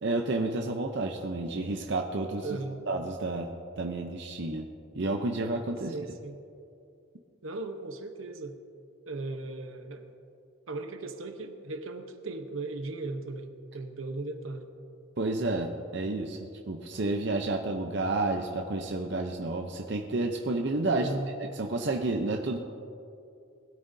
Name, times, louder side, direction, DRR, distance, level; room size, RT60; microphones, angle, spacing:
voice 1, 0.0-2.5 2.9-4.7 4.9-5.9 15.2-21.1 21.4-22.6, right 2 dB, 55° right, 3 dB, 0.7 m, -30 dB
voice 2, 2.4-2.8 5.9-6.4 7.4-8.6 9.1-10.1 10.7-14.7 20.9-21.3, right 3 dB, 80° right, 6 dB, 1.0 m, -37 dB
20.0 x 12.5 x 2.7 m, 2.5 s
head